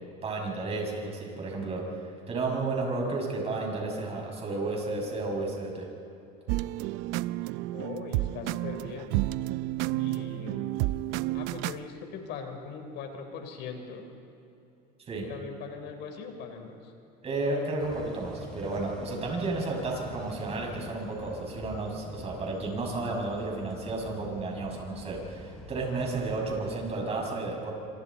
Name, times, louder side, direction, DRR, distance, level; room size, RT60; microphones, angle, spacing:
voice 1, 0.2-1.8 2.3-5.9 15.1-15.3 17.2-27.7, right 3 dB, 30° right, 0 dB, 6.4 m, -32 dB
sound 1, 6.5-11.8, right 17 dB, 70° right, 0.6 m, -31 dB
voice 2, 7.7-9.2 9.9-10.8 11.3-14.1 15.3-16.9, left 5 dB, 60° left, 5 dB, 4.1 m, -40 dB
sound 2, 17.8-27.0, left 1 dB, 5° left, 5.5 m, -45 dB
27.0 x 25.5 x 4.2 m, 2.9 s
supercardioid pair, 125°, 20 cm